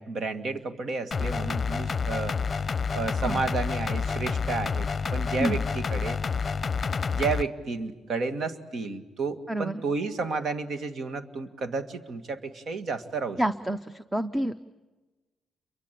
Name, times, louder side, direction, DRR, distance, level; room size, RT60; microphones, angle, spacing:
voice 1, 0.0-2.4 2.9-6.2 7.1-13.4, right 4 dB, 55° right, 9 dB, 2.2 m, -31 dB
sound 1, 1.1-7.4, left 5 dB, 35° left, 0.8 m, -29 dB
voice 2, 9.5-9.8 13.4-14.7, right 1 dB, 10° right, 12 dB, 0.8 m, -29 dB
29.5 x 23.5 x 8.5 m, 1.2 s
cardioid pair, 90°, 0 cm